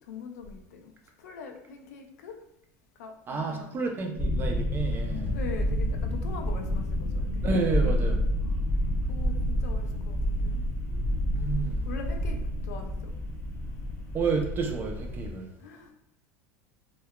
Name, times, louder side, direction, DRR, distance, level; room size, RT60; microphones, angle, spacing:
voice 1, 0.1-0.9 1.2-2.4 3.0-3.8 5.3-7.5 7.9-8.1 8.4-8.6 9.1-10.6 11.8-13.1 15.6-15.9, left 5 dB, 90° left, 5 dB, 0.4 m, -42 dB
voice 2, 3.3-5.3 7.4-8.1 10.9-11.8 14.1-15.5, right 4 dB, 25° right, 3 dB, 0.4 m, -30 dB
sound 1, 4.1-15.3, equal, 45° left, 0.7 m, -29 dB
2.7 x 2.2 x 2.2 m, 0.78 s
supercardioid pair, 135°, 9 cm